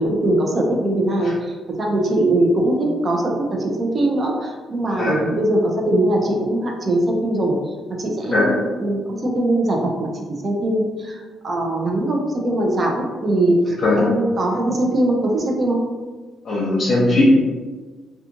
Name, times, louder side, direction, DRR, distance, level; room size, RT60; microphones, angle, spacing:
voice 1, 0.0-7.5 8.0-15.8, right 1 dB, 40° right, 0 dB, 0.6 m, -21 dB
voice 2, 13.8-14.1 16.4-17.2, left 2 dB, 55° left, -7 dB, 0.7 m, -19 dB
2.5 x 2.3 x 2.8 m, 1.4 s
cardioid pair, 90°, 0 cm